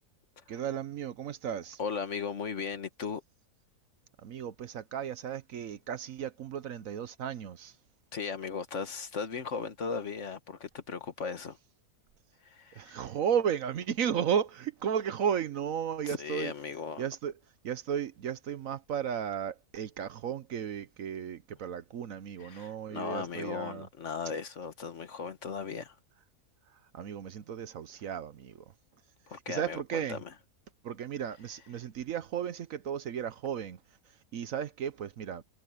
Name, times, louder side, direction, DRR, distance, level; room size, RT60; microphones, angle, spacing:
voice 1, 0.5-1.8 4.2-7.8 12.7-16.5 17.0-17.3 17.6-23.9 26.7-28.7 29.3-30.2 30.8-33.8 34.1-35.4, right 8 dB, 65° right, 1.1 m, -34 dB
voice 2, 1.8-3.2 8.1-11.6 12.4-13.0 16.0-17.0 22.4-26.0 29.3-30.2, left 5 dB, 55° left, 1.5 m, -37 dB
omnidirectional pair, 1.6 m